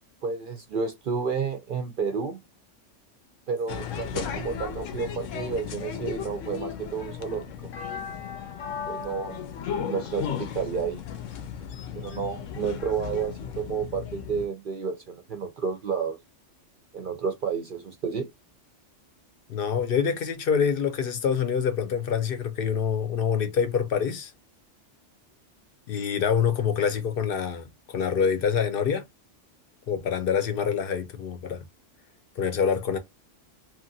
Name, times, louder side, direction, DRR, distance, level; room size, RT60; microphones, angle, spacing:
voice 1, 0.2-2.4 3.5-7.5 8.9-9.5 9.9-11.0 11.9-16.2 16.9-18.3, right 6 dB, 60° right, 0.5 m, -31 dB
sound 1, 3.7-14.5, left 8 dB, 85° left, 0.9 m, -35 dB
voice 2, 19.5-24.3 25.9-29.0 29.9-31.6 32.4-33.0, left 7 dB, 60° left, 0.7 m, -26 dB
2.9 x 2.4 x 2.5 m
omnidirectional pair, 1.3 m